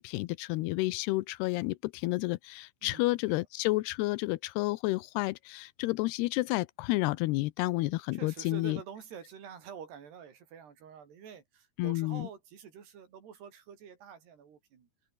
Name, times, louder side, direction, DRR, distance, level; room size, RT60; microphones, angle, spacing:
voice 1, 0.0-8.8 11.8-12.3, left 20 dB, 85° left, 2.7 m, -30 dB
voice 2, 8.1-14.9, right 7 dB, 80° right, 5.8 m, -47 dB
open air
omnidirectional pair, 4.7 m